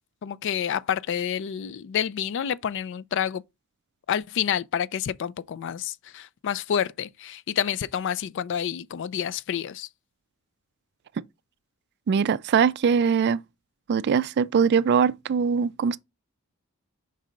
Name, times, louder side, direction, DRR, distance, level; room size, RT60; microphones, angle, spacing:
voice 1, 0.2-3.4 4.1-9.9, left 9 dB, 55° left, 0.3 m, -28 dB
voice 2, 12.1-13.4 13.9-16.0, right 6 dB, 50° right, 0.3 m, -22 dB
5.3 x 3.9 x 5.0 m
head